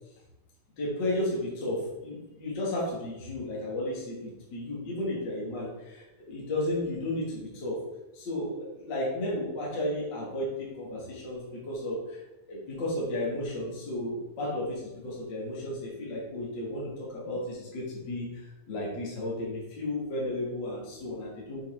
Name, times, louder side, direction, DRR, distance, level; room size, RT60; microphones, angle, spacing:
voice 1, 0.8-7.8 8.1-12.2 12.5-21.6, left 1 dB, 40° left, -5 dB, 2.1 m, -33 dB
7.3 x 5.8 x 3.7 m, 0.99 s
omnidirectional pair, 4.0 m